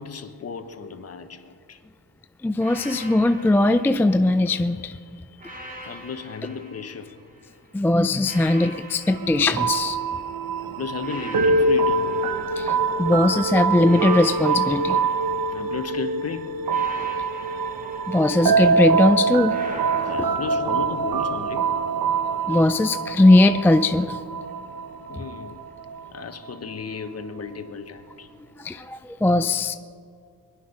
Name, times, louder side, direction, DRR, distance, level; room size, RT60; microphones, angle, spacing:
voice 1, 0.0-1.8 5.9-7.1 10.6-12.2 15.5-16.6 20.0-21.7 25.1-25.6 26.1-28.3, left 5 dB, 40° left, 8 dB, 1.1 m, -34 dB
voice 2, 2.4-5.0 7.7-10.0 12.6-15.0 18.1-19.6 20.2-20.3 22.5-24.2 28.6-29.8, left 2 dB, 5° left, 9 dB, 0.3 m, -20 dB
sound 1, 2.6-4.7 5.4-7.5 8.2-10.4 11.0-13.2 13.8-16.0 16.6-18.8 19.5-21.5, equal, 20° right, 2.3 m, -42 dB
sound 2, 9.1-26.5, right 4 dB, 65° right, 0.9 m, -24 dB
21.0 x 11.5 x 5.5 m, 2.2 s
cardioid pair, 115°, 37 cm